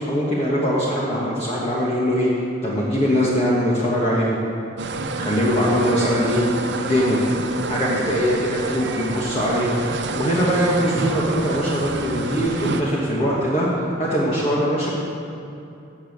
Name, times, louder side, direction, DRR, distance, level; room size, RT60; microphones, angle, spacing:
voice 1, 0.0-2.3 2.6-4.4 5.2-7.2 7.7-9.8 10.1-13.7 14.0-14.9, equal, 35° left, -6 dB, 1.3 m, -21 dB
sound 1, 4.8-12.8, right 3 dB, 70° right, 0.6 m, -28 dB
7.9 x 6.9 x 7.8 m, 2.7 s
head